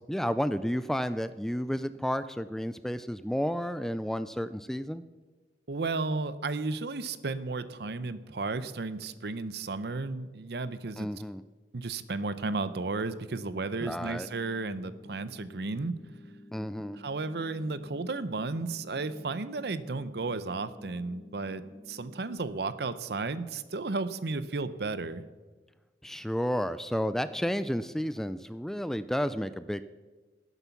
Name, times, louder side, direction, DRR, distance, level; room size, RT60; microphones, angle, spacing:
voice 1, 0.1-5.0 11.0-11.4 13.8-14.3 16.5-17.0 26.0-29.8, equal, ahead, 13 dB, 0.3 m, -31 dB
voice 2, 5.7-11.1 11.7-15.9 17.0-25.2, right 3 dB, 65° right, 14 dB, 0.7 m, -33 dB
sound 1, 12.4-22.4, equal, 20° left, 0.8 m, -52 dB
19.0 x 8.1 x 5.9 m, 1.3 s
head